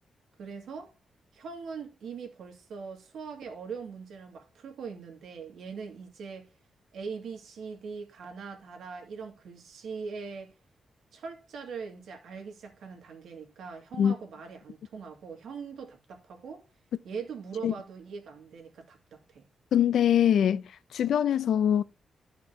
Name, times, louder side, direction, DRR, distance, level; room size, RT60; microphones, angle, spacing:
voice 1, 0.4-0.9 1.3-6.5 6.9-10.5 11.1-16.7 17.0-19.5, right 5 dB, 90° right, 2.3 m, -41 dB
voice 2, 19.7-20.6 20.9-21.8, left 9 dB, 85° left, 0.5 m, -23 dB
13.0 x 5.8 x 2.9 m
wide cardioid pair, 150°, 0 cm